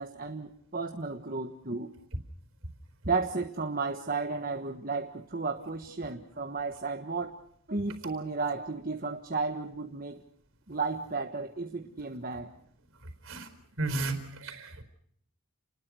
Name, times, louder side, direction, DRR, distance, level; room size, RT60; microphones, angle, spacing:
voice 1, 0.0-1.9 3.1-7.4 7.7-10.2 10.7-12.5, right 4 dB, 40° right, 4 dB, 1.4 m, -33 dB
voice 2, 13.8-14.1 14.4-14.8, right 2 dB, 60° right, 9 dB, 4.5 m, -32 dB
29.5 x 20.5 x 6.3 m, 0.69 s
head